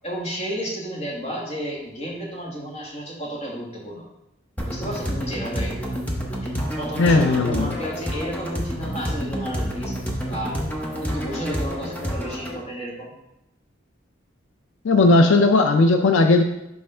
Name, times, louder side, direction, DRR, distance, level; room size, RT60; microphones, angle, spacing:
voice 1, 0.0-4.0 4.6-5.7 6.8-10.0 10.2-10.6 11.0-13.1, equal, 30° left, -3 dB, 1.4 m, -32 dB
sound 1, 4.6-12.6, equal, 10° left, 0.7 m, -29 dB
voice 2, 7.0-7.8 14.8-16.4, left 2 dB, 80° left, 6 dB, 0.4 m, -16 dB
5.5 x 3.4 x 5.5 m, 0.88 s
head